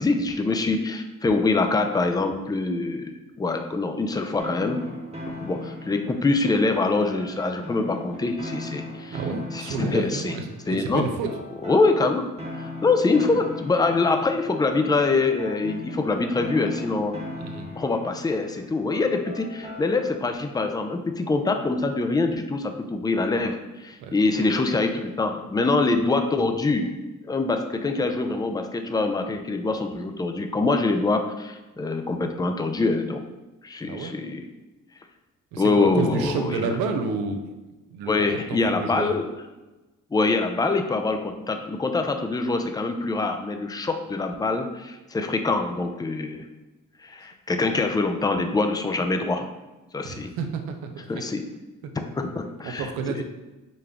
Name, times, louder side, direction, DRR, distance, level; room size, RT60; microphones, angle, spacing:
voice 1, 0.0-4.8 5.4-9.2 9.5-10.4 10.7-11.1 11.6-12.2 12.6-17.2 17.8-27.0 27.2-33.2 33.6-34.4 35.6-36.8 38.1-39.3 40.1-46.4 47.0-49.5 49.9-50.3 51.1-51.4 52.2-53.2, left 3 dB, 10° left, 6 dB, 0.4 m, -24 dB
sound 1, 4.4-20.3, left 1 dB, 20° right, 1.0 m, -39 dB
voice 2, 9.1-11.3 17.4-17.7 24.0-24.1 33.8-34.1 35.5-37.4 37.9-39.1 50.0-51.2 51.8-51.9 52.6-53.2, right 4 dB, 85° right, 6 dB, 0.6 m, -30 dB
5.1 x 2.2 x 3.6 m, 1.1 s
supercardioid pair, 50°, 35 cm